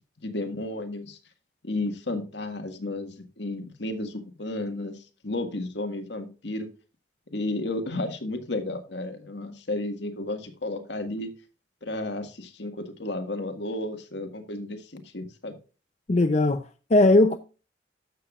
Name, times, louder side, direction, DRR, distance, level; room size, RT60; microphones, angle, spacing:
voice 1, 0.2-1.2 1.6-6.7 7.3-11.3 11.8-15.6, left 2 dB, 70° left, 1.7 m, -33 dB
voice 2, 16.1-17.4, left 2 dB, 35° left, 0.5 m, -19 dB
12.5 x 7.8 x 2.4 m
head